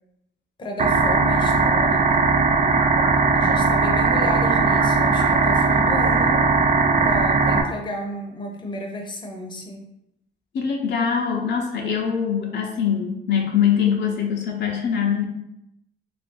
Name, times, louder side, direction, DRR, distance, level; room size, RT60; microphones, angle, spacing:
voice 1, 0.6-2.5 3.3-6.4 7.0-9.9, equal, 25° left, 1 dB, 0.7 m, -32 dB
sound 1, 0.8-7.6, right 4 dB, 40° right, 0.5 m, -19 dB
voice 2, 10.5-15.2, left 7 dB, 60° left, 0 dB, 0.6 m, -23 dB
3.3 x 2.5 x 3.6 m, 0.81 s
cardioid pair, 90°, 20 cm